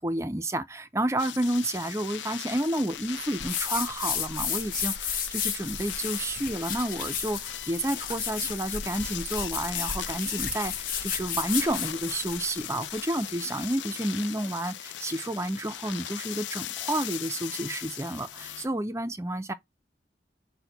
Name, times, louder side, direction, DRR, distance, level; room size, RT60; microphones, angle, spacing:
voice 1, 0.0-19.5, right 1 dB, 15° right, 0.4 m, -30 dB
sound 1, 1.2-18.7, left 11 dB, 85° left, 0.5 m, -39 dB
sound 2, 3.4-12.4, left 7 dB, 50° left, 0.9 m, -33 dB
6.1 x 2.2 x 3.9 m
head